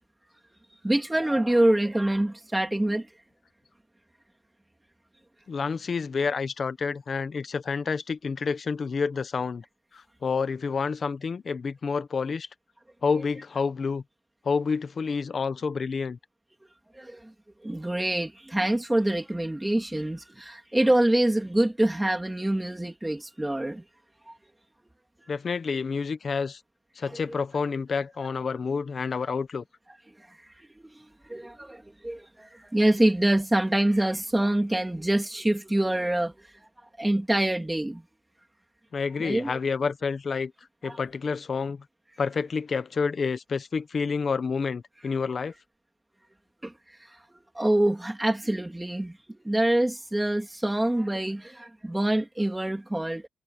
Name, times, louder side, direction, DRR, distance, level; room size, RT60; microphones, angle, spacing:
voice 1, 0.8-3.1 16.9-17.3 17.6-23.8 27.0-27.2 30.8-36.3 37.0-38.0 39.2-39.5 40.8-41.0 46.6-46.7 47.5-49.2 49.4-53.3, right 1 dB, 5° right, 3.0 m, -25 dB
voice 2, 5.5-9.6 9.9-12.5 13.0-14.0 14.4-16.2 25.3-26.6 27.0-29.6 38.9-40.5 40.8-41.8 42.2-45.5, left 5 dB, 35° left, 0.9 m, -29 dB
wide cardioid pair, 170°, 0 cm